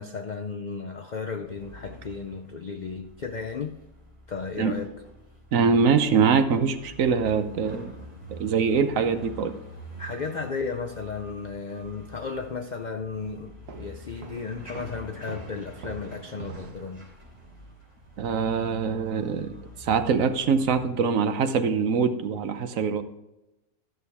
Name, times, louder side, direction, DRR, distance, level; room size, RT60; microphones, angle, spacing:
voice 1, 0.0-3.8 4.3-4.9 10.0-17.1, left 5 dB, 70° left, 5 dB, 0.4 m, -34 dB
sound 1, 1.4-20.8, right 1 dB, 30° right, 3.4 m, -47 dB
voice 2, 5.5-7.9 8.3-9.6 18.2-23.0, right 5 dB, 65° right, 9 dB, 1.1 m, -23 dB
Walk footsteps, 13.7-17.0, right 6 dB, 85° right, 1.5 m, -44 dB
13.0 x 6.5 x 3.5 m, 0.94 s
omnidirectional pair, 1.6 m